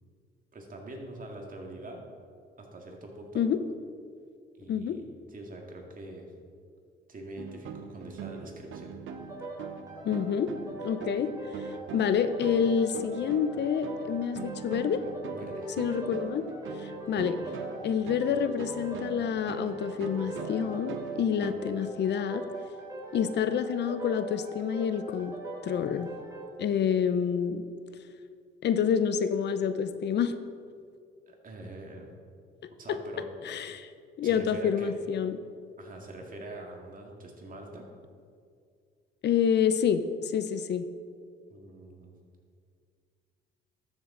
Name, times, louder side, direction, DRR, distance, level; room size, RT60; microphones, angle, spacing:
voice 1, 0.5-2.0 2.6-3.4 4.6-5.0 5.3-6.3 7.1-9.0 15.3-15.7 31.3-32.1 32.8-33.3 34.2-34.9 35.8-37.9 41.5-42.1, right 1 dB, 45° right, 1 dB, 2.0 m, -44 dB
voice 2, 4.7-5.0 10.0-10.5 10.8-11.3 11.9-15.0 15.8-16.4 16.8-17.4 17.8-22.4 23.1-25.3 25.6-26.1 26.6-27.6 28.6-30.3 32.9-33.0 33.4-33.9 34.2-35.4 39.2-40.8, left 7 dB, 60° left, 11 dB, 0.6 m, -28 dB
sound 1, 7.4-21.6, right 6 dB, 80° right, 0.7 m, -43 dB
sound 2, 9.1-26.5, right 2 dB, 15° right, 2.7 m, -41 dB
13.0 x 7.1 x 3.8 m, 2.2 s
cardioid pair, 90°, 20 cm